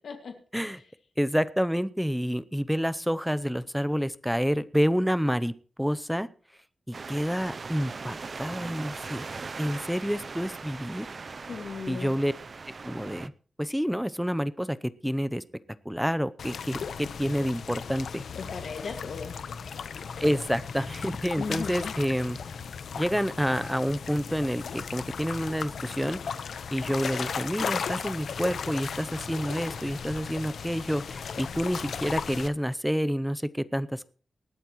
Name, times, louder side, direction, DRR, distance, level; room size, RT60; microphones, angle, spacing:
voice 1, 1.2-6.3 6.9-9.3 9.6-11.1 11.9-12.3 12.8-13.3 13.6-14.8 15.0-15.4 15.8-18.2 20.2-22.4 23.0-26.2 26.7-34.1, equal, ahead, 15 dB, 0.6 m, -28 dB
sound 1, 6.9-13.3, right 4 dB, 40° right, 0.5 m, -40 dB
voice 2, 11.5-12.1 18.5-19.3 21.4-21.9, left 5 dB, 75° left, 4 dB, 2.0 m, -36 dB
sound 2, 16.4-32.5, left 6 dB, 90° left, 0.9 m, -36 dB
19.5 x 13.5 x 3.1 m, 0.41 s
wide cardioid pair, 150°, 0 cm